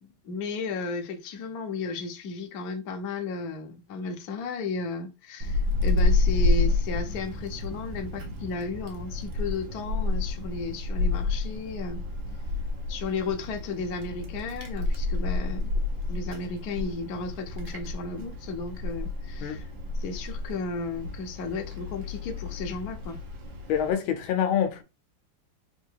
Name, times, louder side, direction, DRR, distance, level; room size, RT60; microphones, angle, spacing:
voice 1, 0.0-12.0 12.9-15.7 16.1-19.7 20.0-23.2, left 4 dB, 60° left, 1.1 m, -34 dB
Wind, 5.4-23.9, left 3 dB, 65° right, 1.7 m, -30 dB
voice 2, 23.7-24.8, left 9 dB, 75° left, 1.5 m, -26 dB
4.2 x 2.6 x 4.5 m
omnidirectional pair, 2.3 m